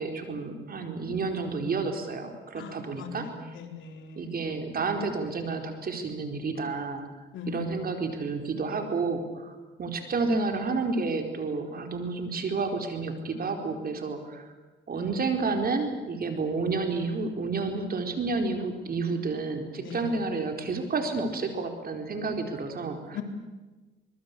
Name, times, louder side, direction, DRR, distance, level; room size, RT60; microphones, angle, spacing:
voice 1, 0.0-3.6 4.2-7.0 7.5-14.5 14.9-23.2, right 4 dB, 50° right, 5 dB, 4.5 m, -30 dB
voice 2, 2.6-4.3 7.3-7.7 19.8-20.0 23.1-23.2, left 7 dB, 75° left, 4 dB, 4.2 m, -40 dB
25.0 x 22.0 x 8.6 m, 1.2 s
cardioid pair, 90°, 20 cm